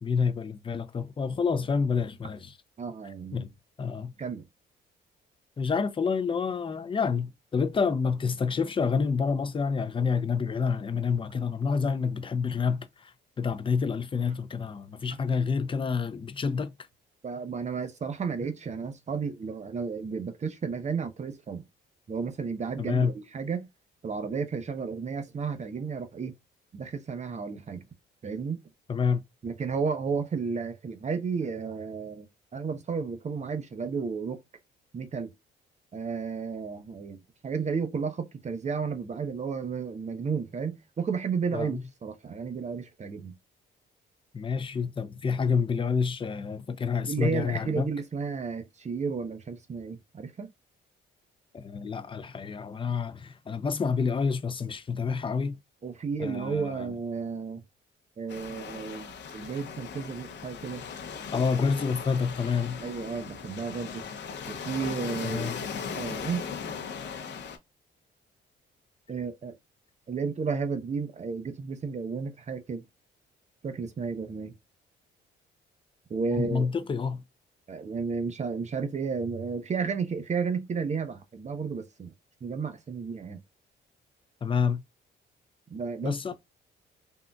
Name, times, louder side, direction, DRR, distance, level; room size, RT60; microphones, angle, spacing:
voice 1, 0.0-2.5 3.3-3.5 3.8-4.1 5.6-16.7 22.8-23.1 28.9-29.2 41.5-41.8 44.3-47.9 51.5-55.6 56.2-56.9 61.3-62.8 65.2-65.6 76.3-77.2 84.4-84.8 86.0-86.3, left 5 dB, 25° left, 0.5 m, -28 dB
voice 2, 2.8-3.5 4.2-4.5 15.1-15.2 17.2-21.6 22.1-23.7 24.0-26.4 26.7-27.9 28.2-28.6 29.4-32.3 32.5-34.4 34.9-35.3 35.9-37.2 37.4-43.3 47.1-50.5 55.8-57.6 58.2-60.8 62.8-64.0 64.5-65.6 65.9-66.5 69.1-69.6 70.1-72.8 73.6-74.5 76.1-76.7 77.7-82.1 82.4-83.4 85.7-86.1, right 5 dB, 35° right, 0.7 m, -32 dB
Waves surf, 58.3-67.6, left 6 dB, 65° left, 0.7 m, -38 dB
3.6 x 2.5 x 2.2 m
cardioid pair, 90°, 20 cm